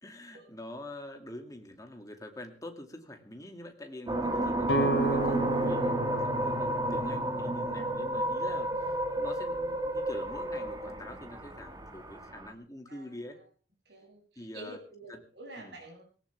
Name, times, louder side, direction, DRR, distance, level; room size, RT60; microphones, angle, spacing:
voice 1, 0.0-13.4 14.4-14.8 15.1-15.2 15.6-15.8, left 1 dB, 20° left, 4 dB, 2.4 m, -45 dB
sound 1, 4.1-12.5, right 1 dB, 25° right, 1.8 m, -31 dB
sound 2, 4.7-8.5, right 1 dB, 80° left, 3.0 m, -33 dB
voice 2, 12.9-13.3 13.9-16.0, right 1 dB, 75° right, 1 dB, 7.7 m, -49 dB
19.0 x 17.5 x 3.4 m, 0.39 s
head